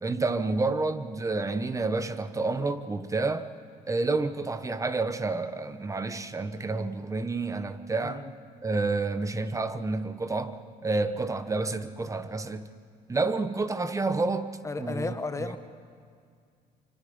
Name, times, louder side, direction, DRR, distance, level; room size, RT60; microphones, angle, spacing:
voice 1, 0.0-3.5 3.9-8.2 8.6-12.7 13.1-14.5 14.8-15.5, right 3 dB, 20° right, 11 dB, 1.1 m, -29 dB
voice 2, 14.6-15.6, left 3 dB, 20° left, 9 dB, 1.3 m, -33 dB
25.5 x 25.0 x 5.5 m, 2.2 s
cardioid pair, 110°, 17 cm